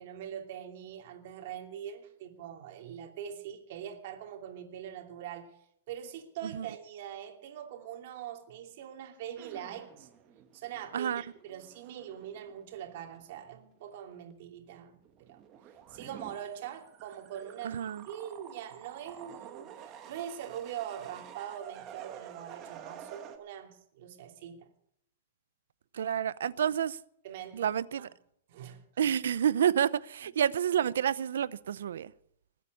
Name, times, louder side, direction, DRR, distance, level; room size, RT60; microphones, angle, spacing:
voice 1, 0.0-5.5 5.9-10.1 10.5-14.9 15.2-15.4 15.9-17.8 18.1-24.7 27.2-27.7 28.5-28.8, right 9 dB, 50° right, 2.8 m, -42 dB
sound 1, 9.4-13.5 13.8-14.4 14.8-23.4, right 9 dB, 25° right, 1.6 m, -50 dB
voice 2, 17.6-18.1 25.9-27.0 27.5-28.1 29.0-32.1, right 9 dB, 85° right, 0.7 m, -29 dB
21.0 x 8.2 x 8.4 m
hypercardioid pair, 160°, 0 cm